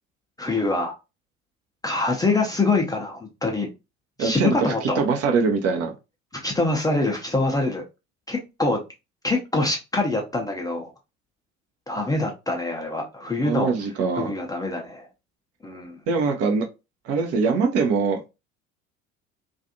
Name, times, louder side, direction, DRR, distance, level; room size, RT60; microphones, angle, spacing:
voice 1, 0.4-0.9 1.8-3.7 4.2-5.2 6.3-7.8 8.3-8.8 9.2-10.9 11.9-13.7 14.2-15.1 15.6-16.0, left 2 dB, 10° left, 0.6 m, -25 dB
voice 2, 4.2-5.9 13.4-14.3 16.1-16.7 17.0-18.2, right 4 dB, 40° right, 0.7 m, -23 dB
2.4 x 2.4 x 2.6 m
figure-of-eight pair, 60°, 39 cm